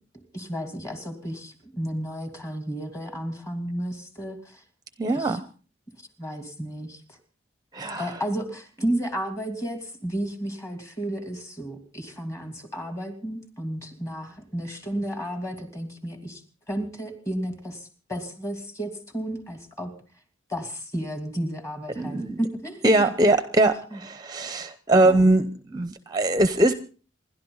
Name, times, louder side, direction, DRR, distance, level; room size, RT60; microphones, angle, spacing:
voice 1, 0.3-4.6 5.2-5.4 6.2-7.0 8.0-16.4 16.7-19.9 20.5-23.1 23.9-24.0 25.0-25.3, right 1 dB, 15° left, 5 dB, 2.8 m, -32 dB
voice 2, 5.0-5.4 7.7-8.2 22.0-22.4 22.8-26.7, right 2 dB, 20° right, 11 dB, 0.8 m, -22 dB
28.0 x 12.0 x 4.0 m, 0.39 s
head